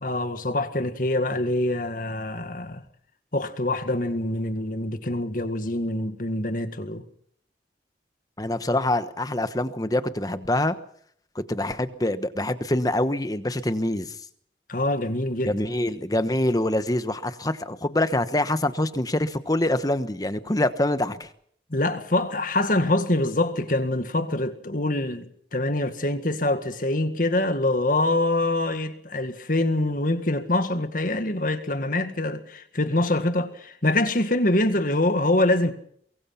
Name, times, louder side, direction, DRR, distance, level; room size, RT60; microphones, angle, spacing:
voice 1, 0.0-2.8 3.3-7.0 14.7-15.5 21.7-35.7, left 1 dB, 50° left, 1.9 m, -25 dB
voice 2, 8.4-10.7 11.3-14.2 15.4-21.3, left 1 dB, 20° left, 1.1 m, -25 dB
23.5 x 23.0 x 5.8 m
head